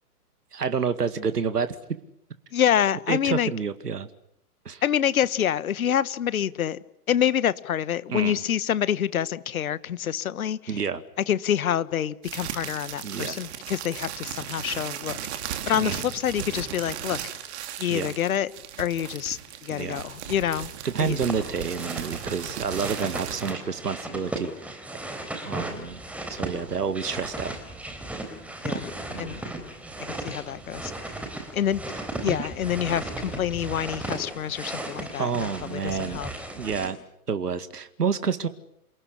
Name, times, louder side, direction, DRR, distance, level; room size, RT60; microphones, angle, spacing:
voice 1, 0.5-1.8 3.1-4.1 4.7-4.8 8.1-8.4 10.7-11.0 13.0-13.4 15.8-16.0 17.9-18.2 19.7-20.1 20.8-24.8 25.4-26.0 26.3-27.6 29.1-29.4 31.9-32.5 35.2-36.2 36.6-37.0 37.3-38.5, right 6 dB, 80° right, 2.1 m, -29 dB
voice 2, 2.5-3.5 4.8-6.8 7.1-10.8 11.3-15.2 15.7-17.2 17.8-18.5 18.8-20.7 21.0-21.2 28.6-28.9 29.2-29.7 30.0-30.9 31.5-31.8 32.2-36.3, left 10 dB, 60° left, 1.4 m, -27 dB
sound 1, 12.2-23.5, right 10 dB, 45° right, 3.3 m, -36 dB
sound 2, 21.2-36.9, right 2 dB, 5° right, 3.7 m, -36 dB
28.5 x 19.0 x 10.0 m
figure-of-eight pair, 125°, 47 cm